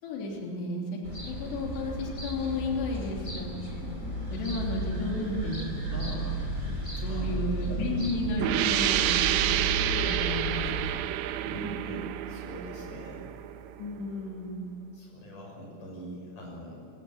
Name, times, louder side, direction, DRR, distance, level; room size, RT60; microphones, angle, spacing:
voice 1, 0.0-1.0 1.2-3.5 3.8-6.3 7.0-9.6 10.0-11.0 13.8-14.7 15.2-15.4, left 2 dB, 60° left, -1 dB, 5.2 m, -33 dB
sound 1, 1.0-10.9, right 1 dB, 15° left, 3.6 m, -34 dB
sound 2, 8.4-13.9, right 13 dB, 85° right, 2.5 m, -29 dB
voice 2, 11.5-13.3 14.9-16.8, equal, 40° left, -1 dB, 7.7 m, -42 dB
26.0 x 15.0 x 8.7 m, 2.8 s
omnidirectional pair, 5.9 m